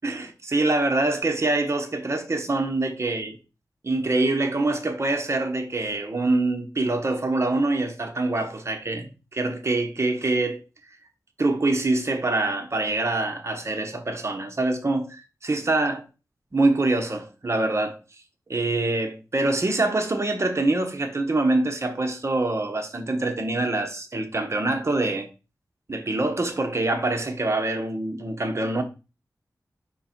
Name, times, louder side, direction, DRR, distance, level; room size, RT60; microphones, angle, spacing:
voice 1, 0.0-3.4 3.8-10.6 11.4-16.0 16.5-18.0 18.5-25.3 25.9-28.8, right 2 dB, 45° right, 1.1 m, -25 dB
5.2 x 4.3 x 4.4 m
wide cardioid pair, 80°, 7 cm